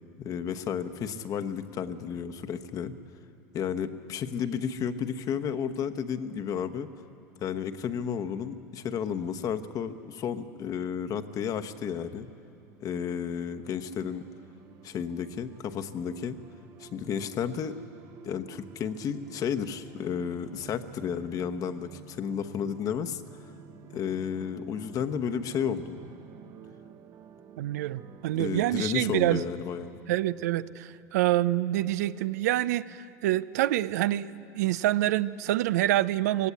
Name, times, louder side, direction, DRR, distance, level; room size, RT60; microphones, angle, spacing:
voice 1, 0.2-2.9 3.5-6.9 7.4-12.3 12.8-14.2 14.8-16.4 16.8-17.8 18.2-23.2 23.9-26.0 28.3-30.0, left 7 dB, 45° left, 9 dB, 1.1 m, -32 dB
sound 1, 12.6-29.0, right 7 dB, 45° right, 1.1 m, -51 dB
voice 2, 27.6-29.4 30.1-36.5, right 14 dB, 80° right, 17 dB, 0.5 m, -26 dB
18.5 x 17.0 x 8.4 m, 2.6 s
supercardioid pair, 100°, 9 cm